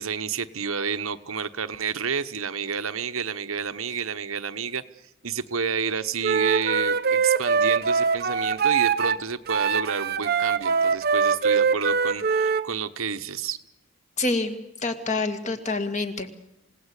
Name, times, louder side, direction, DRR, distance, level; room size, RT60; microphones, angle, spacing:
voice 1, 0.0-4.8 5.2-13.6, right 6 dB, 80° right, 10 dB, 1.1 m, -30 dB
Wind instrument woodwind instrument, 6.2-9.2 9.5-12.6, right 5 dB, 45° right, 0.9 m, -23 dB
voice 2, 14.2-16.3, left 3 dB, 35° left, 6 dB, 2.2 m, -27 dB
27.5 x 18.0 x 8.3 m, 0.90 s
head